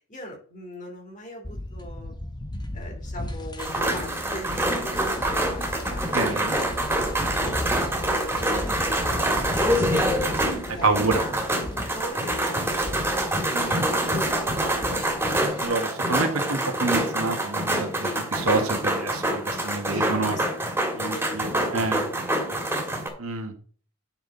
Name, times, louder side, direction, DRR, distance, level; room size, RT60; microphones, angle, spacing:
voice 1, 0.1-2.1 2.7-9.1 9.5-10.1 10.7-11.3 11.7-16.0 18.0-18.2 19.9-20.6 20.9-23.1, left 1 dB, 40° left, 1 dB, 3.3 m, -40 dB
sound 1, 1.4-15.6, left 1 dB, 20° left, 1.2 m, -36 dB
sound 2, 3.6-23.1, right 1 dB, 10° right, 1.9 m, -26 dB
voice 2, 6.1-6.6 10.8-11.2 13.5-13.8 15.6-20.3 21.0-22.1 23.2-23.5, right 3 dB, 85° right, 5 dB, 1.6 m, -28 dB
10.0 x 5.9 x 4.0 m, 0.43 s
head